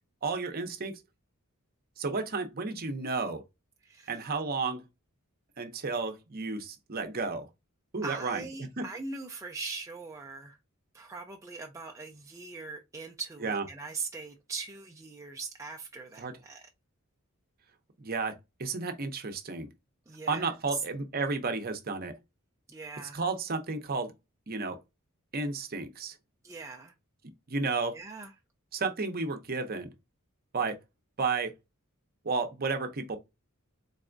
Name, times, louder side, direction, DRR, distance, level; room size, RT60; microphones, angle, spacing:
voice 1, 0.2-1.0 2.0-3.4 4.1-4.8 5.6-7.5 7.9-8.9 13.4-13.6 16.2-16.3 18.0-18.3 18.6-19.7 20.3-22.1 23.1-24.1 24.5-24.8 25.3-26.1 27.5-28.0 28.7-29.9 30.5-30.8 31.2-31.5 32.2-33.2, right 4 dB, 45° right, 0.7 m, -32 dB
voice 2, 3.8-4.3 8.0-10.6 10.9-16.7 20.1-20.8 22.7-23.2 26.4-26.9 27.9-28.3, right 4 dB, 15° right, 0.4 m, -41 dB
4.1 x 3.4 x 2.5 m
head